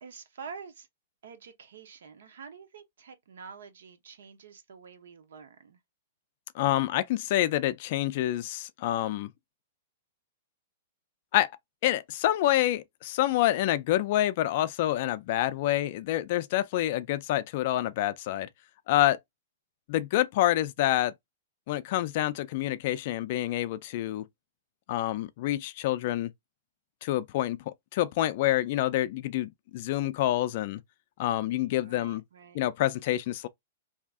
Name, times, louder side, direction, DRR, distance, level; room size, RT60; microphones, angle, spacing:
voice 1, 0.0-0.9 1.2-5.8 31.7-32.6, right 6 dB, 75° right, 0.8 m, -47 dB
voice 2, 6.5-9.3 11.3-11.5 11.8-18.5 18.9-19.2 19.9-21.1 21.7-24.2 24.9-26.3 27.0-30.8 31.2-32.2 32.5-33.5, left 14 dB, 40° left, 0.3 m, -27 dB
2.7 x 2.4 x 3.5 m
hypercardioid pair, 175°, 0 cm